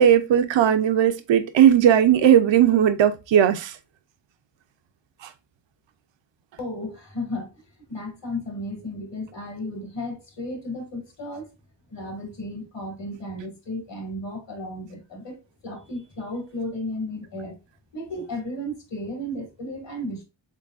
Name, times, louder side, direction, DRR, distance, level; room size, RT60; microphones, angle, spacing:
voice 1, 0.0-3.7, right 9 dB, 75° right, 0.6 m, -17 dB
voice 2, 6.6-11.5 11.9-17.6 17.9-20.2, left 1 dB, 70° left, 1.9 m, -34 dB
3.9 x 3.8 x 2.3 m
wide cardioid pair, 95°, 45 cm